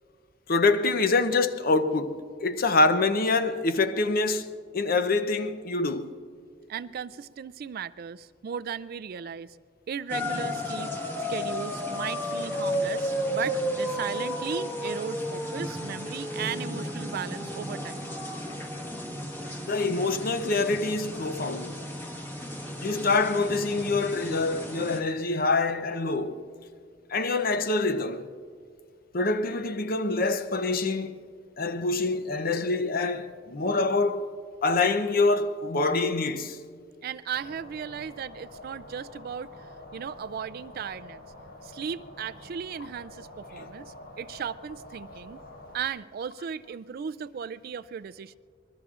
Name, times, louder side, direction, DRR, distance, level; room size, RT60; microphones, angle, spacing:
voice 1, 0.5-4.5 4.7-6.1 19.6-21.8 22.8-26.4 27.1-28.3 29.1-31.2 31.6-34.3 34.6-36.6 43.6-43.7, left 3 dB, 45° left, 0.6 m, -25 dB
voice 2, 6.7-9.6 9.9-10.9 11.3-18.1 37.0-39.5 39.9-41.2 41.6-45.4 45.7-48.4, right 7 dB, 45° right, 0.3 m, -36 dB
sound 1, 10.1-25.0, equal, 10° left, 1.4 m, -33 dB
sound 2, 37.3-45.8, left 1 dB, 90° left, 3.6 m, -47 dB
26.0 x 21.0 x 2.4 m
head